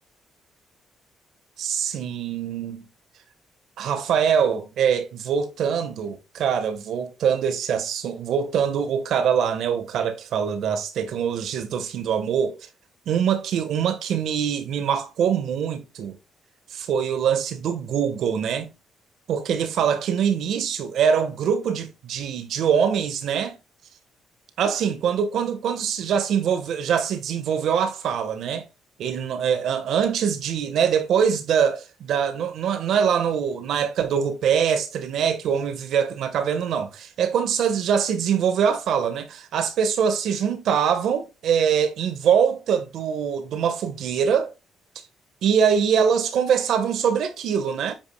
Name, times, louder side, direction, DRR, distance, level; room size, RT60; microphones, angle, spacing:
voice 1, 1.6-2.9 3.8-12.6 13.1-16.2 16.7-18.7 19.3-23.6 24.6-28.7 29.0-44.5 45.4-47.9, right 7 dB, 75° right, 1.3 m, -23 dB
8.9 x 5.3 x 2.3 m
cardioid pair, 90°, 0 cm